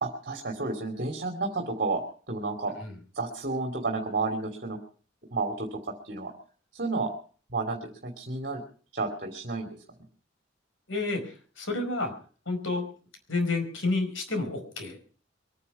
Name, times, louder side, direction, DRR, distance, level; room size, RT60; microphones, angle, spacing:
voice 1, 0.0-2.0 2.3-2.7 3.1-4.8 5.3-6.3 6.7-7.1 7.5-8.6 8.9-9.7, right 3 dB, 50° right, 3 dB, 2.8 m, -31 dB
voice 2, 10.9-12.1 12.4-12.9 13.3-15.0, left 3 dB, 85° left, 6 dB, 5.0 m, -30 dB
23.0 x 10.0 x 5.8 m, 0.42 s
head